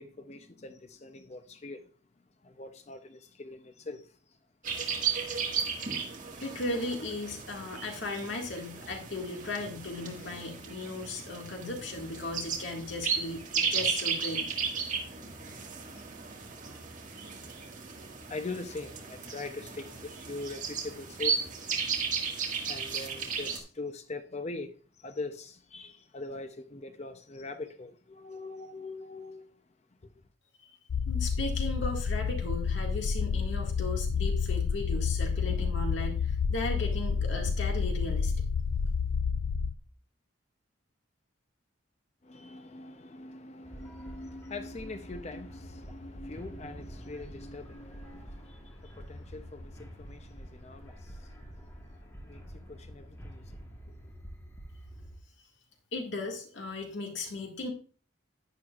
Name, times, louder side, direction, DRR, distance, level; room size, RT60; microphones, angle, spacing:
voice 1, 0.0-1.8 2.4-4.1 14.8-14.9 15.4-15.8 18.3-21.7 22.6-29.5 30.0-30.1 42.2-54.1, left 3 dB, 30° left, 0.5 m, -43 dB
sound 1, 4.6-23.6, right 6 dB, 40° right, 1.7 m, -35 dB
voice 2, 6.4-14.5 31.1-38.3 55.9-57.7, left 2 dB, 65° left, 1.9 m, -36 dB
sound 2, 30.9-39.7, left 5 dB, 90° left, 0.4 m, -29 dB
sound 3, 43.6-55.2, equal, 15° left, 1.2 m, -47 dB
11.0 x 9.9 x 2.4 m
head